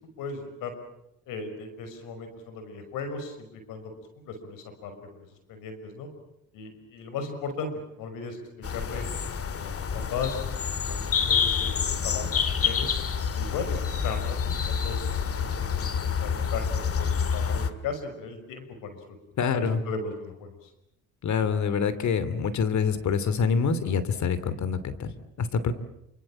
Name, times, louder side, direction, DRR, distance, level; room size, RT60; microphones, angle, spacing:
voice 1, 0.2-0.7 1.3-3.9 4.3-6.1 6.5-7.7 8.0-9.0 9.6-10.4 10.8-12.3 12.6-13.0 13.3-19.0 19.5-20.7, left 4 dB, 85° left, 8 dB, 6.0 m, -37 dB
sound 1, 8.6-17.7, left 7 dB, 45° left, 2.2 m, -28 dB
voice 2, 19.4-19.8 21.2-25.1 25.4-25.7, left 6 dB, 60° left, 14 dB, 2.8 m, -26 dB
27.5 x 26.5 x 7.5 m, 0.81 s
cardioid pair, 90°, 32 cm